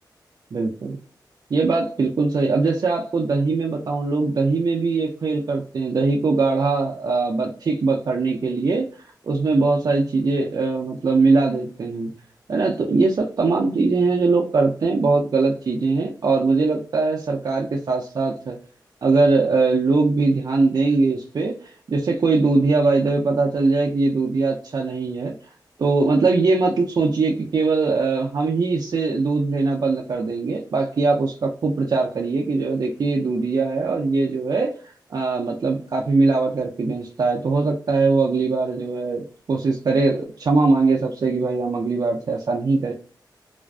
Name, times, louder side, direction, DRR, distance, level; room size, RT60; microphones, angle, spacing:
voice 1, 0.5-1.0 1.5-8.9 9.2-12.1 12.5-18.6 19.0-25.3 25.8-34.7 35.1-42.9, right 3 dB, 60° right, -1 dB, 0.4 m, -21 dB
2.5 x 2.4 x 2.2 m, 0.42 s
wide cardioid pair, 95°, 8 cm